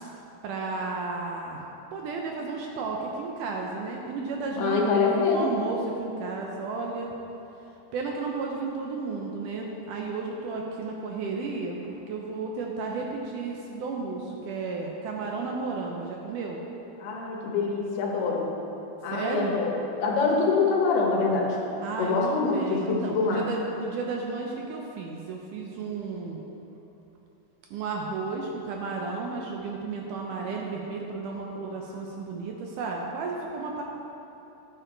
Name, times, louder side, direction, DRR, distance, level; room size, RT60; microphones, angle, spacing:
voice 1, 0.4-1.6 1.9-7.1 7.9-16.6 19.1-19.5 21.8-26.4 27.7-33.8, right 4 dB, 80° right, 0 dB, 1.8 m, -33 dB
voice 2, 4.6-5.5 17.0-18.5 19.0-19.7 20.0-21.6 22.0-23.4, left 4 dB, 80° left, -2 dB, 3.3 m, -25 dB
11.5 x 8.9 x 3.9 m, 3.0 s
omnidirectional pair, 4.5 m